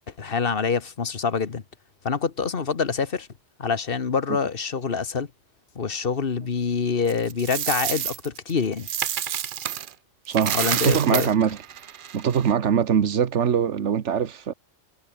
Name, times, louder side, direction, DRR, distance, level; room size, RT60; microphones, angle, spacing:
voice 1, 0.2-1.6 2.0-3.3 3.6-5.3 5.7-8.9 10.5-11.3, left 5 dB, 50° left, 1.5 m, -26 dB
Coin (dropping), 7.1-9.9 10.3-12.5, right 9 dB, 55° right, 0.7 m, -29 dB
voice 2, 10.3-10.6 10.8-11.6 12.1-14.5, right 8 dB, 75° right, 1.5 m, -22 dB
omnidirectional pair, 1.2 m